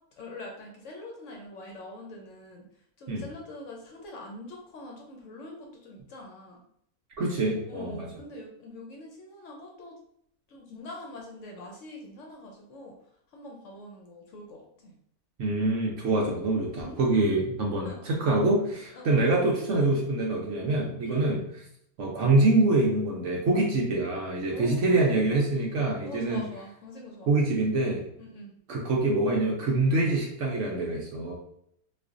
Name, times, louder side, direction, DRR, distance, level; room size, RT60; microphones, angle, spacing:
voice 1, 0.2-2.6 3.0-6.6 7.4-10.0 10.5-13.0 13.3-14.9 16.7-17.1 17.8-18.0 18.9-19.2 21.0-21.4 24.5-25.3 26.0-27.3 28.2-28.5, left 2 dB, 65° left, 0 dB, 0.9 m, -44 dB
voice 2, 7.2-8.1 15.4-21.4 22.0-26.4 27.3-28.0 28.7-31.4, right 2 dB, 65° right, -1 dB, 0.8 m, -25 dB
4.1 x 2.4 x 2.4 m, 0.71 s
omnidirectional pair, 1.6 m